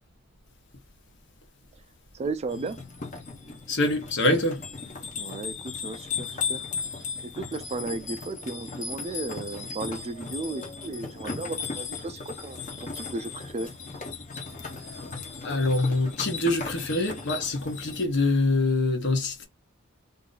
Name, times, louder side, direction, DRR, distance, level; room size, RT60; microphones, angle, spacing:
voice 1, 2.1-2.8 5.2-6.7 7.2-13.7, right 3 dB, 30° right, 0.4 m, -35 dB
sound 1, 2.5-18.1, left 5 dB, 40° left, 1.1 m, -36 dB
voice 2, 3.7-4.6 15.4-19.5, left 2 dB, 60° left, 1.1 m, -25 dB
2.8 x 2.6 x 3.8 m
head